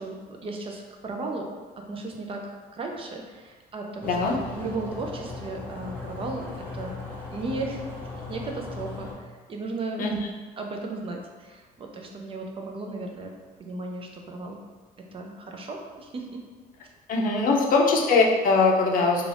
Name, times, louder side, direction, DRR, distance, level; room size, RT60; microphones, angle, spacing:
voice 1, 0.0-1.5 1.8-6.4 6.7-7.0 7.3-7.8 8.3-10.1 10.6-13.3 13.6-14.6 15.1-16.4 17.4-17.5, right 3 dB, 35° right, 2 dB, 0.4 m, -35 dB
voice 2, 4.0-4.4 10.0-10.2 17.1-19.3, left 3 dB, 55° left, 0 dB, 0.5 m, -21 dB
sound 1, 4.0-9.1, left 3 dB, 10° left, 0.7 m, -38 dB
2.5 x 2.4 x 3.3 m, 1.5 s
cardioid pair, 110°, 17 cm